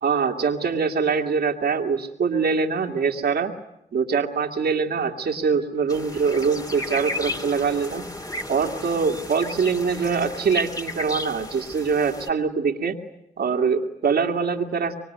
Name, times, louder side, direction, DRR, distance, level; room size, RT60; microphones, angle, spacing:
voice 1, 0.0-3.5 3.9-8.1 8.5-13.0 13.4-14.9, right 5 dB, 80° right, 4 dB, 2.3 m, -23 dB
sound 1, 5.9-12.3, left 1 dB, 20° left, 2.5 m, -34 dB
25.5 x 24.0 x 9.4 m, 0.80 s
supercardioid pair, 45°, 16 cm